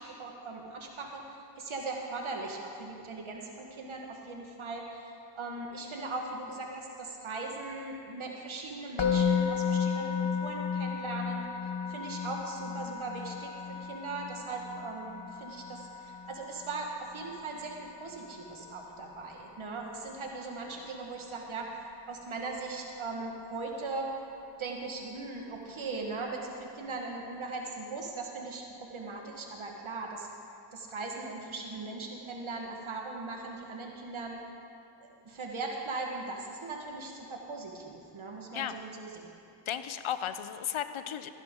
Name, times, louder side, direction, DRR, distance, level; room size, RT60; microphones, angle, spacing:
voice 1, 0.0-11.4 11.9-13.5 13.8-21.7 22.1-24.1 24.6-30.3 30.7-34.4 35.0-39.3, right 3 dB, 80° right, 1 dB, 1.7 m, -39 dB
Musical instrument, 9.0-20.1, left 6 dB, 60° left, 1.0 m, -34 dB
voice 2, 39.7-41.3, left 9 dB, 90° left, 11 dB, 0.6 m, -34 dB
15.5 x 10.5 x 3.8 m, 2.7 s
cardioid pair, 40°, 48 cm